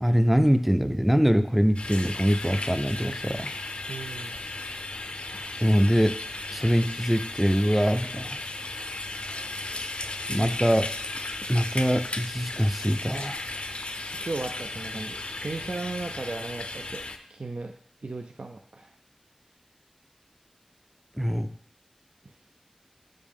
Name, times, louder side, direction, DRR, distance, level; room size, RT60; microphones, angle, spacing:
voice 1, 0.0-3.5 5.6-6.2 6.5-8.4 10.3-10.9 11.5-13.7 21.2-21.5, equal, 5° right, 10 dB, 0.4 m, -23 dB
sound 1, 1.8-17.2, left 2 dB, 60° left, 0.5 m, -35 dB
voice 2, 3.9-4.4 9.7-9.9 14.2-17.7 18.0-18.9 22.2-22.4, right 3 dB, 65° right, 4 dB, 0.4 m, -36 dB
6.4 x 5.2 x 3.5 m, 0.62 s
wide cardioid pair, 45°, 2 cm